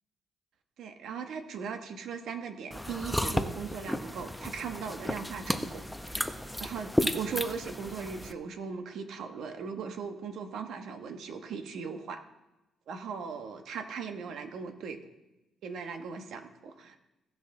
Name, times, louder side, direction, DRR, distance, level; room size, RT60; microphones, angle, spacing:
voice 1, 0.8-5.8 6.6-12.2 12.9-15.0 15.6-17.0, right 6 dB, 75° right, 6 dB, 1.1 m, -38 dB
sound 1, 2.7-8.3, left 1 dB, 5° left, 0.6 m, -33 dB
17.0 x 6.1 x 3.8 m, 1.0 s
cardioid pair, 90°, 0 cm